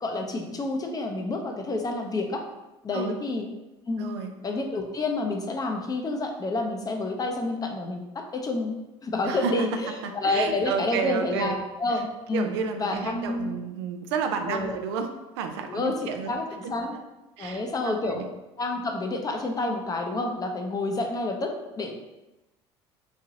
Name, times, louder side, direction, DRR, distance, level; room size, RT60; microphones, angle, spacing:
voice 1, 0.0-2.4 2.8-3.5 3.9-4.1 4.4-8.7 9.0-12.5 12.8-13.6 14.5-14.8 15.7-16.9 17.4-18.3 18.6-21.9, left 2 dB, 30° left, 3 dB, 0.6 m, -29 dB
voice 2, 4.0-4.3 9.3-11.6 12.3-16.4 16.6-17.0 17.4-18.3, right 6 dB, 80° right, 6 dB, 0.4 m, -31 dB
3.2 x 2.7 x 3.7 m, 1.0 s
hypercardioid pair, 75°, 13 cm